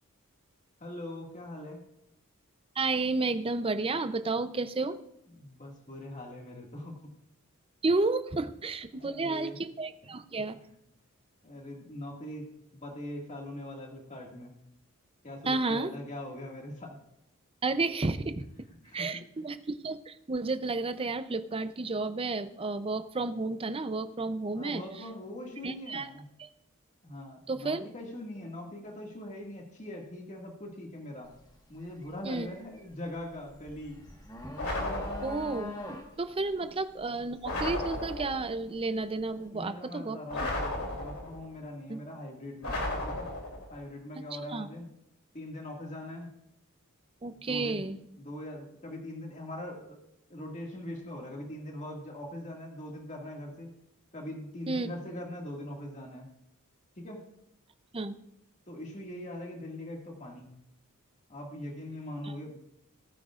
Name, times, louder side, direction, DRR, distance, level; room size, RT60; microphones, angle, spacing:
voice 1, 0.8-1.8 5.3-7.1 8.9-9.6 10.0-10.2 11.4-14.6 15.2-17.0 18.8-19.1 24.5-26.3 27.0-31.3 31.7-34.0 39.4-43.3 43.7-44.9 45.3-46.3 47.4-47.8 48.2-50.0 50.3-53.7 54.1-56.3 57.0-57.2 58.7-60.5 61.3-62.6, left 1 dB, 35° left, 0 dB, 2.1 m, -42 dB
voice 2, 2.8-5.0 7.8-10.6 15.4-15.9 17.6-18.5 18.9-24.8 25.6-26.1 26.4-26.5 27.5-27.8 32.2-32.5 35.2-35.8 36.2-40.2 41.9-42.0 44.3-44.7 47.2-48.0 54.7-54.9 57.9-58.1 62.2-62.3, right 3 dB, 25° right, 11 dB, 0.6 m, -31 dB
sound 1, 31.2-31.5 31.9-38.9, left 2 dB, 20° left, 1.5 m, -43 dB
sound 2, 34.6-35.6 37.4-38.5 40.3-41.5 42.6-43.7, left 1 dB, 80° left, 3.1 m, -34 dB
19.0 x 9.2 x 2.5 m, 0.79 s
head